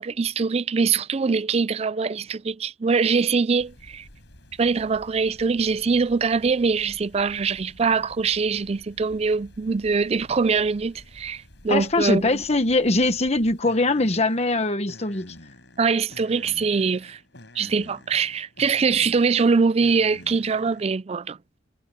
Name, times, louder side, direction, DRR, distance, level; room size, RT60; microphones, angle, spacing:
voice 1, 0.0-4.1 4.6-12.4 15.8-17.2 17.6-21.4, right 5 dB, 35° right, 0.4 m, -23 dB
sound 1, 3.6-21.0, left 1 dB, 65° left, 6.5 m, -49 dB
voice 2, 11.7-15.4, left 2 dB, 35° left, 1.2 m, -22 dB
head